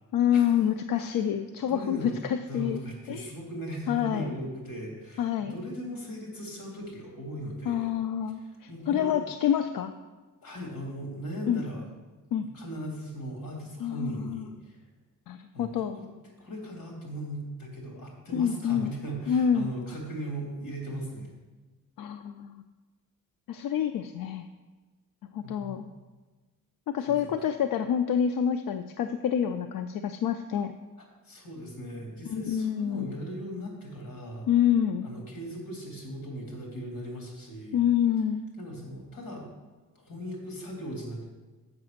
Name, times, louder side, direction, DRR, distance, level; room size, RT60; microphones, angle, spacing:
voice 1, 0.1-2.8 3.1-3.3 3.9-4.3 5.2-5.6 7.7-9.9 11.5-11.6 12.3-12.5 13.8-14.4 15.3-16.0 18.3-18.9 19.3-19.7 22.0-22.6 23.5-24.5 25.3-25.9 26.9-30.7 32.3-33.2 34.5-35.1 37.7-38.4, left 9 dB, 75° left, 8 dB, 0.5 m, -27 dB
voice 2, 0.9-1.3 1.7-7.9 8.3-9.1 10.4-11.9 12.4-14.8 15.5-16.1 16.4-21.3 25.4-25.8 27.1-27.3 31.0-34.5 35.0-37.8 38.6-39.5 39.9-41.3, equal, 90° left, 0 dB, 2.7 m, -38 dB
7.3 x 5.8 x 6.4 m, 1.3 s
wide cardioid pair, 140°, 34 cm